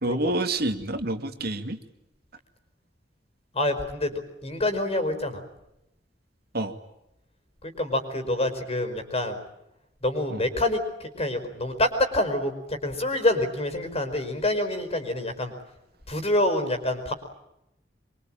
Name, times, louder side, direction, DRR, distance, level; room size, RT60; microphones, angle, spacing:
voice 1, 0.0-1.8 6.5-6.8 10.3-10.4, right 2 dB, 60° right, 8 dB, 2.3 m, -28 dB
voice 2, 3.5-4.1 4.4-5.4 7.6-9.4 10.0-15.5 16.1-17.1, left 1 dB, 35° left, 8 dB, 5.1 m, -26 dB
25.0 x 24.0 x 9.0 m, 0.86 s
head